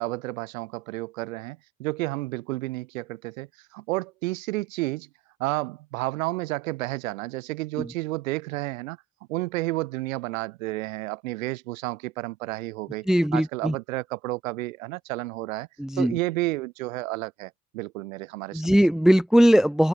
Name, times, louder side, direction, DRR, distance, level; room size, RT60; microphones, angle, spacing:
voice 1, 0.0-3.5 3.7-5.1 5.4-9.0 9.3-15.7 16.0-18.8, right 20 dB, 85° right, 1.9 m, -31 dB
voice 2, 13.1-13.7 15.8-16.1 18.5-19.9, equal, ahead, 0.7 m, -19 dB
open air
supercardioid pair, 75°, 39 cm